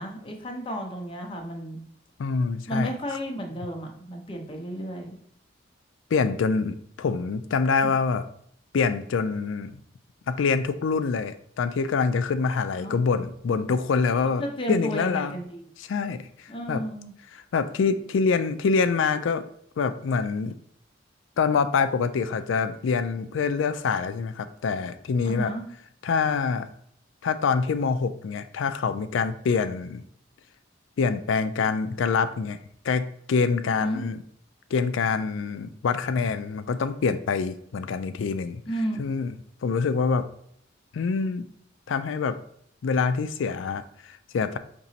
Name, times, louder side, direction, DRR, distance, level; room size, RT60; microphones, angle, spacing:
voice 1, 0.0-1.8 2.7-5.2 7.8-7.9 12.8-13.0 14.4-15.6 16.5-17.1 25.2-25.6 33.8-34.0 38.7-39.0, equal, 25° left, 1 dB, 0.7 m, -32 dB
voice 2, 2.2-2.9 6.1-8.2 8.7-9.8 10.3-14.4 14.7-15.3 15.8-16.8 17.3-19.5 19.8-20.5 21.4-25.5 26.0-26.7 27.2-30.0 31.0-32.6 32.8-34.2 34.7-38.6 39.0-39.4 39.6-40.3 40.9-41.4 41.9-42.4 42.8-44.6, left 5 dB, 80° left, 11 dB, 0.4 m, -25 dB
5.3 x 2.9 x 2.7 m, 0.68 s
head